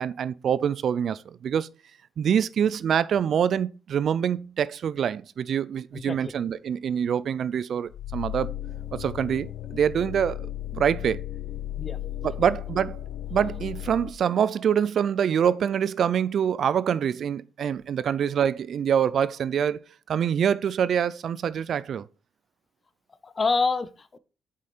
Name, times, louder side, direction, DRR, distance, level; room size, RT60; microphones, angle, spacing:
voice 1, 0.0-1.7 2.2-8.5 8.9-10.5 10.7-11.2 12.2-13.0 13.3-19.8 20.1-22.0, right 8 dB, 60° right, 0.4 m, -25 dB
voice 2, 5.9-6.3 11.8-12.0 23.2-24.2, left 4 dB, 35° left, 0.7 m, -27 dB
sound 1, 7.9-14.1, left 12 dB, 80° left, 0.5 m, -35 dB
7.3 x 5.0 x 4.3 m
cardioid pair, 90°, 0 cm